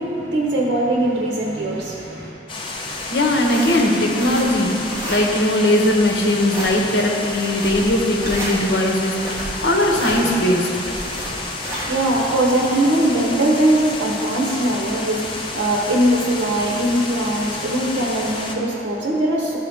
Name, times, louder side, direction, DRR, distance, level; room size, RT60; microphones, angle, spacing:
voice 1, 0.0-2.3 11.6-19.6, right 1 dB, 75° right, -3 dB, 1.0 m, -21 dB
sound 1, 2.5-18.6, left 2 dB, 30° left, 0.6 m, -30 dB
sound 2, 2.8-12.2, right 1 dB, 20° right, 1.5 m, -32 dB
voice 2, 3.1-4.7 5.1-10.7, left 1 dB, 70° left, 0 dB, 1.0 m, -19 dB
12.0 x 4.7 x 3.5 m, 2.7 s
head